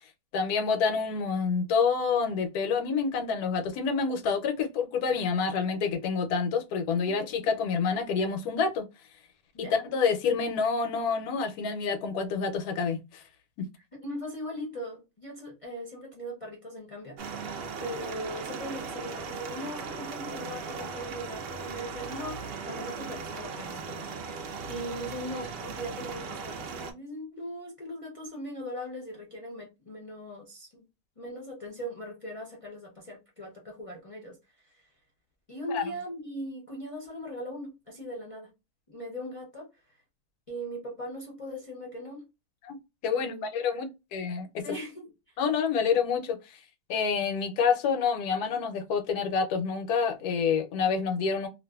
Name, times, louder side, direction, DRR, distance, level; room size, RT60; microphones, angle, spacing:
voice 1, 0.3-8.9 9.7-13.2 13.6-13.7 35.7-35.8 42.6-44.6 45.4-46.6 46.9-51.5, left 5 dB, 85° left, 1.1 m, -28 dB
voice 2, 13.9-30.9 31.2-34.9 35.5-38.5 38.9-40.0 40.5-42.3 43.1-43.8 44.6-45.4, equal, 45° left, 0.4 m, -40 dB
sound 1, 17.2-26.9, right 5 dB, 85° right, 0.5 m, -38 dB
2.6 x 2.4 x 2.3 m
omnidirectional pair, 1.6 m